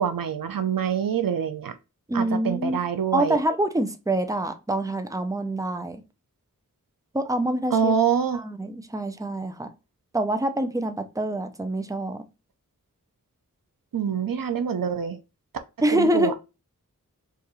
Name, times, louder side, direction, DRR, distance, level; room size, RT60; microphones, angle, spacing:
voice 1, 0.0-1.7 2.1-3.4 7.7-8.4 13.9-15.2 15.9-16.3, right 7 dB, 85° right, 0.5 m, -25 dB
voice 2, 2.1-2.8 3.1-6.0 7.1-7.9 8.3-9.7 10.1-12.2 15.8-16.3, right 1 dB, 10° right, 0.6 m, -26 dB
4.7 x 2.5 x 3.1 m
wide cardioid pair, 50°, 33 cm